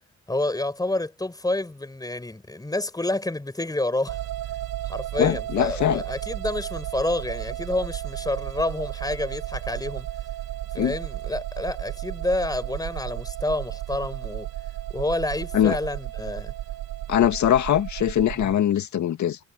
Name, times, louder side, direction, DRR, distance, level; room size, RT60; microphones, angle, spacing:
voice 1, 0.3-4.2 4.8-10.1 10.7-14.5 14.9-16.5 18.4-18.6, left 2 dB, 10° left, 5.3 m, -29 dB
sound 1, 4.1-18.5, right 13 dB, 85° right, 4.3 m, -33 dB
voice 2, 5.2-6.0 10.8-10.9 15.5-15.8 17.1-19.4, left 10 dB, 70° left, 2.3 m, -22 dB
cardioid pair, 90°, 30 cm